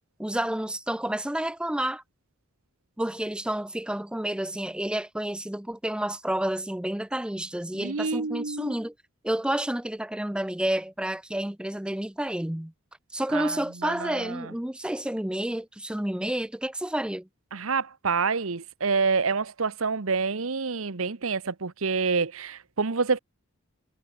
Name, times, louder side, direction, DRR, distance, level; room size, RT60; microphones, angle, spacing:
voice 1, 0.2-2.0 3.0-8.9 9.2-12.7 13.1-17.3, right 1 dB, 5° right, 0.4 m, -30 dB
voice 2, 7.8-8.7 13.3-14.5 17.5-23.2, right 4 dB, 75° right, 1.0 m, -27 dB
head